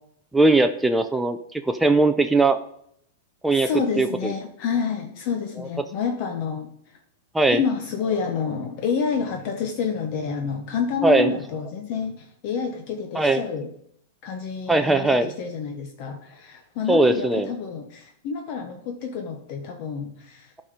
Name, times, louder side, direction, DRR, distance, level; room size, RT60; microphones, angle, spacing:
voice 1, 0.3-2.6 3.4-3.7 4.0-4.3 5.6-5.7 7.3-7.6 11.0-11.3 13.1-13.4 14.7-15.3 16.9-17.5, right 2 dB, 5° right, 6 dB, 0.4 m, -19 dB
voice 2, 3.5-6.7 7.5-13.7 14.2-20.6, left 6 dB, 40° left, 5 dB, 0.8 m, -28 dB
11.0 x 4.3 x 5.0 m, 0.69 s
supercardioid pair, 160°, 0 cm